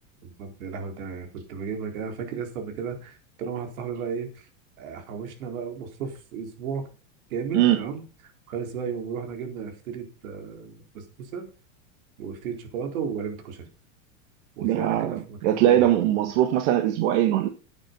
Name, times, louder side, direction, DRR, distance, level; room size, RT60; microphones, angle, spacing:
voice 1, 0.2-4.5 4.8-6.9 7.3-8.0 8.5-11.5 12.2-13.7 14.6-16.3, right 6 dB, 80° right, 4.3 m, -34 dB
voice 2, 14.6-17.5, right 12 dB, 55° right, 1.5 m, -21 dB
11.0 x 8.9 x 5.4 m
supercardioid pair, 160°, 42 cm